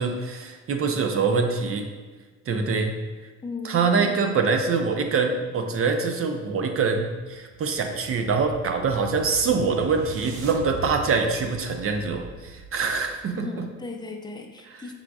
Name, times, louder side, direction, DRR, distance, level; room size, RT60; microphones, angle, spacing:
voice 1, 0.0-1.9 2.5-3.0 3.6-13.7, right 4 dB, 50° right, 5 dB, 0.5 m, -24 dB
voice 2, 3.4-4.3 13.3-14.9, left 3 dB, 15° left, 4 dB, 0.5 m, -37 dB
sound 1, 7.3-13.2, right 2 dB, 90° right, 0.6 m, -41 dB
4.8 x 3.8 x 2.3 m, 1.4 s
cardioid pair, 90°, 30 cm